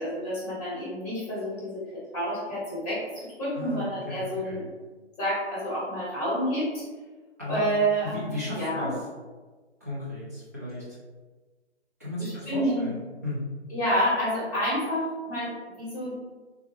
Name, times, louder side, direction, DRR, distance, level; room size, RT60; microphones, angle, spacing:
voice 1, 0.0-1.8 2.1-4.6 5.2-6.8 7.5-8.9 12.2-12.9 13.7-16.3, equal, 5° left, -8 dB, 1.0 m, -29 dB
voice 2, 3.5-4.6 7.4-7.6 8.0-9.0 9.8-10.8 12.0-13.5, left 1 dB, 15° right, -9 dB, 0.4 m, -35 dB
3.5 x 2.2 x 2.9 m, 1.3 s
figure-of-eight pair, 140°, 33 cm